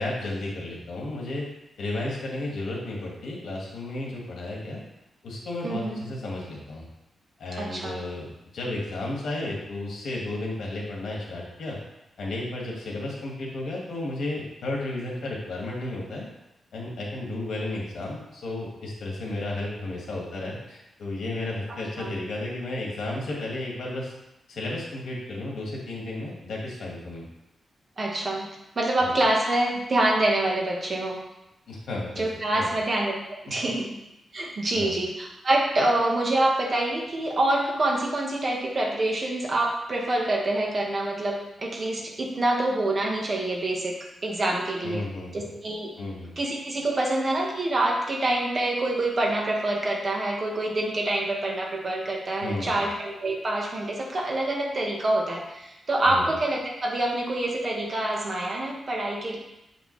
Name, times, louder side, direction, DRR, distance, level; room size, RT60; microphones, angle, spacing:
voice 1, 0.0-1.5 1.8-4.8 5.2-6.9 7.4-11.8 12.2-16.3 16.7-24.1 24.5-27.2 29.0-29.2 31.7-32.3 32.5-32.7 34.7-35.0 44.8-45.5 46.0-46.3 52.4-52.8 56.1-56.3, left 2 dB, 75° left, -2 dB, 1.7 m, -33 dB
voice 2, 5.6-6.0 7.6-8.0 22.0-22.1 28.0-28.5 28.8-31.2 32.2-33.1 33.5-33.9 34.3-43.9 44.2-45.0 45.3-45.9 46.4-59.4, right 1 dB, 35° right, -1 dB, 1.2 m, -26 dB
7.3 x 5.2 x 3.2 m, 0.90 s
wide cardioid pair, 145°, 0 cm